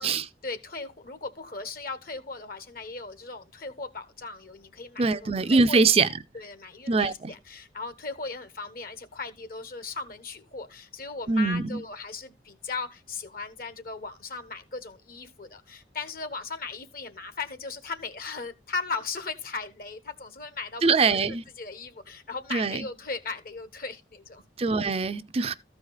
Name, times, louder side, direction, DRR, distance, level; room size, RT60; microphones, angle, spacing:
voice 1, 0.4-5.8 6.3-24.4, left 4 dB, 55° left, 1.3 m, -37 dB
voice 2, 5.0-6.1 6.9-7.3 11.3-11.8 20.8-21.4 22.5-22.9 24.6-25.5, right 4 dB, 35° right, 0.5 m, -23 dB
14.5 x 4.8 x 4.0 m
head